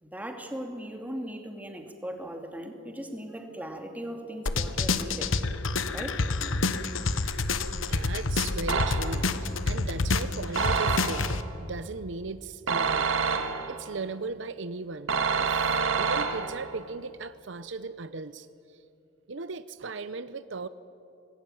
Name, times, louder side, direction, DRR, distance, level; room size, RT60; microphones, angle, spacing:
voice 1, 0.0-5.3 5.9-6.3, equal, 10° right, 3 dB, 2.5 m, -38 dB
sound 1, 4.5-11.4, left 3 dB, 85° left, 1.1 m, -28 dB
voice 2, 7.2-11.3 11.6-13.1 13.7-18.5 19.3-20.7, right 3 dB, 70° right, 13 dB, 0.7 m, -37 dB
sound 2, 8.7-9.4 10.6-11.5 12.7-13.9 15.1-16.7, right 5 dB, 90° right, 1.9 m, -27 dB
25.0 x 20.0 x 9.2 m, 2.7 s
head